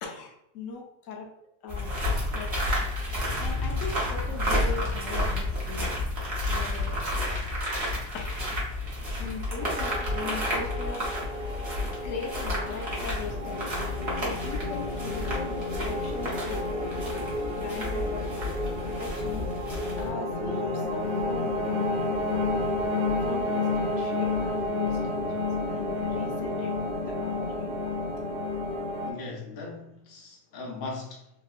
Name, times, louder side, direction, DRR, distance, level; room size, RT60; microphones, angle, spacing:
voice 1, 0.0-1.3 1.6-2.5 3.4-5.9 6.5-7.0 8.1-8.4 9.2-11.1 12.0-17.0 17.5-18.4 18.9-19.5 20.0-21.6 23.2-28.1, left 4 dB, 85° left, 1.0 m, -39 dB
sound 1, 1.7-20.1, left 1 dB, 60° right, 1.2 m, -31 dB
sound 2, 9.6-29.1, left 2 dB, 40° right, 0.9 m, -31 dB
voice 2, 29.0-31.3, left 3 dB, 50° left, 0.8 m, -39 dB
3.6 x 2.5 x 2.4 m
omnidirectional pair, 1.3 m